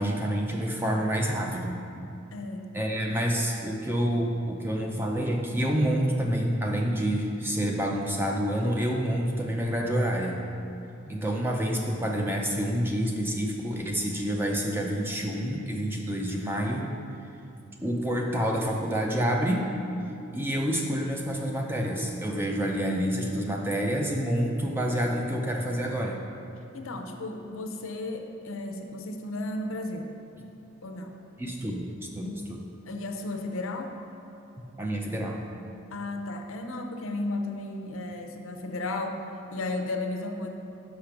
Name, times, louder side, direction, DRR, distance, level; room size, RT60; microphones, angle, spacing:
voice 1, 0.0-1.8 2.7-10.4 11.1-16.9 17.8-19.7 20.3-26.2 31.4-31.9 32.1-32.6 34.6-35.4, equal, 10° right, 0 dB, 0.5 m, -28 dB
voice 2, 2.3-2.7 26.7-30.1 30.8-31.2 32.2-32.5 32.9-33.9 35.9-39.2 39.5-40.5, left 2 dB, 70° left, 4 dB, 0.6 m, -34 dB
sound 1, 17.9-25.4, left 1 dB, 35° right, 1.7 m, -44 dB
5.7 x 5.1 x 5.8 m, 2.6 s
head